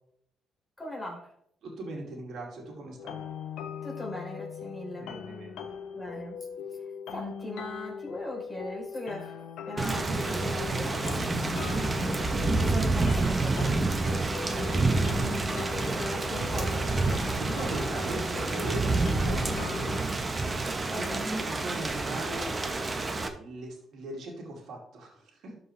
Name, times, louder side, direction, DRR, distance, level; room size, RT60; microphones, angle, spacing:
voice 1, 0.8-1.3 3.8-5.2 5.9-6.5 7.1-11.2 12.5-14.2 15.8-17.4 20.9-21.3, left 1 dB, 15° left, -2 dB, 3.9 m, -39 dB
voice 2, 1.6-3.2 4.9-5.6 11.6-11.8 14.7-15.5 17.4-19.9 21.0-25.5, right 1 dB, 70° right, -1 dB, 2.9 m, -39 dB
sound 1, 3.0-20.0, left 7 dB, 80° left, 0.8 m, -40 dB
Thunder / Rain, 9.8-23.3, right 3 dB, 25° right, 1.2 m, -28 dB
13.0 x 5.3 x 3.4 m, 0.68 s
cardioid pair, 90°, 0 cm